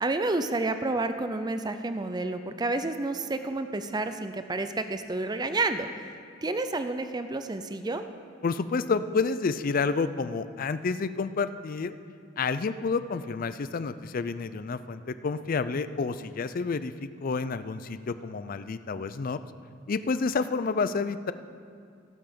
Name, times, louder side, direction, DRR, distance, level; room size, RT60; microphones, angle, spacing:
voice 1, 0.0-5.9 6.4-8.0, right 2 dB, 20° right, 9 dB, 0.5 m, -30 dB
voice 2, 8.4-11.9 12.4-19.4 19.9-21.3, left 4 dB, 45° left, 13 dB, 0.4 m, -29 dB
17.0 x 5.9 x 6.7 m, 2.4 s
head